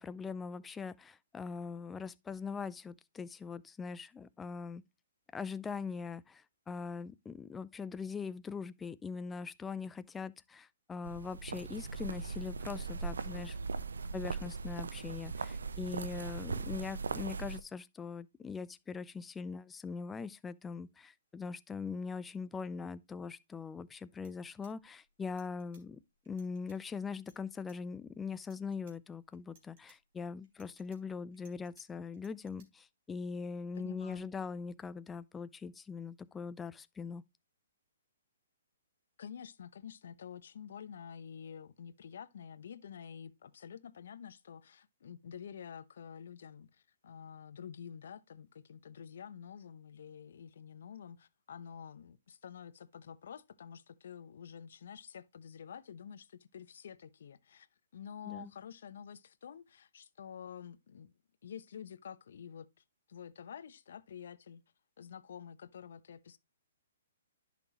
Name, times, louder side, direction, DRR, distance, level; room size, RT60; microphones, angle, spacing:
voice 1, 0.0-4.8 5.3-13.6 14.1-26.0 26.3-37.2 58.2-58.5, left 5 dB, 10° left, 0.4 m, -41 dB
sound 1, 11.0-17.6, right 4 dB, 85° right, 0.8 m, -39 dB
sound 2, 23.8-23.9 24.1-25.8 26.2-26.8 27.2-27.8 28.3-28.9 29.3-30.0 30.4-31.8 32.1-32.7, right 5 dB, 50° right, 3.9 m, -66 dB
voice 2, 33.8-34.3 39.2-57.7 57.9-61.1 61.4-62.7 63.1-64.6 65.0-66.4, left 8 dB, 65° left, 0.8 m, -49 dB
10.5 x 6.1 x 3.0 m
hypercardioid pair, 140°, 0 cm